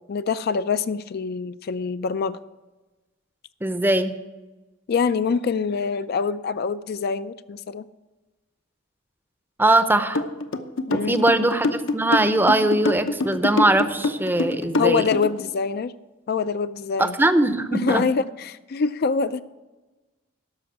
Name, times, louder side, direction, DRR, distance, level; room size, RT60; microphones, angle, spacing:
voice 1, 0.0-2.4 4.9-7.9 10.9-11.2 14.8-16.0 16.3-17.2 17.7-19.4, left 5 dB, 50° left, 13 dB, 0.4 m, -25 dB
voice 2, 3.6-4.2 9.6-10.2 10.9-15.0 17.0-18.0, right 1 dB, 10° right, 11 dB, 0.6 m, -21 dB
sound 1, 10.1-15.4, left 3 dB, 75° left, 0.8 m, -25 dB
13.0 x 5.9 x 9.0 m, 1.2 s
head